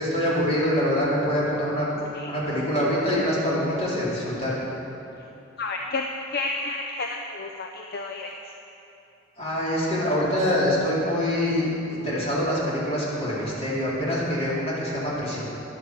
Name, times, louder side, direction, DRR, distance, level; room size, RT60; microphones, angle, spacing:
voice 1, 0.0-4.6 9.4-15.5, equal, 30° left, -7 dB, 4.1 m, -25 dB
voice 2, 5.6-6.0 6.3-8.3, left 3 dB, 55° left, 2 dB, 0.7 m, -31 dB
12.0 x 11.0 x 7.5 m, 3.0 s
head